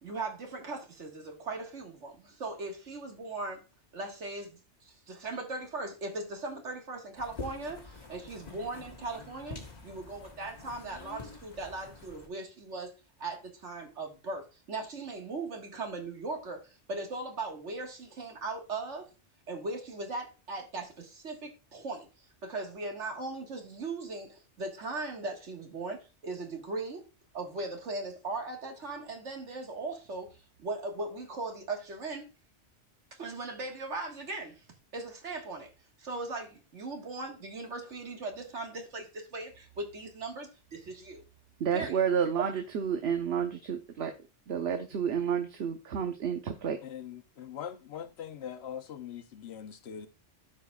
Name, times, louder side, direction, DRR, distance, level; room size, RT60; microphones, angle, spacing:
voice 1, 0.0-3.6 3.9-4.6 4.9-12.9 13.2-19.1 19.5-22.1 22.4-27.1 27.3-30.3 30.6-32.3 33.1-34.6 34.9-35.7 36.0-41.2 41.7-42.0, right 3 dB, 85° right, 1.9 m, -38 dB
sound 1, 7.2-12.3, left 3 dB, 40° left, 1.3 m, -46 dB
voice 2, 41.6-44.1 44.5-46.8, right 7 dB, 65° right, 1.0 m, -30 dB
voice 3, 46.8-50.1, left 9 dB, 65° left, 1.0 m, -42 dB
13.5 x 5.0 x 2.3 m
omnidirectional pair, 1.2 m